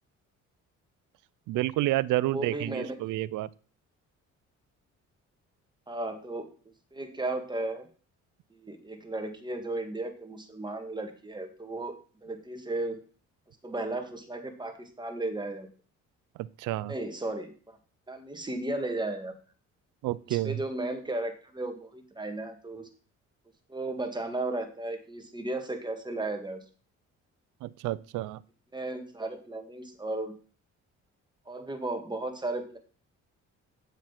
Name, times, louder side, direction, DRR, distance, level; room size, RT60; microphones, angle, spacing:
voice 1, 1.5-3.5 16.4-16.9 20.0-20.6 27.6-28.4, right 16 dB, 90° right, 20 dB, 0.5 m, -30 dB
voice 2, 2.3-3.0 5.9-6.5 6.9-7.9 8.6-13.0 13.6-15.7 16.9-17.8 18.1-19.3 20.3-22.9 23.7-26.6 28.7-30.4 31.5-32.8, right 2 dB, 15° right, 5 dB, 2.1 m, -35 dB
8.0 x 7.2 x 5.9 m, 0.40 s
cardioid pair, 90°, 30 cm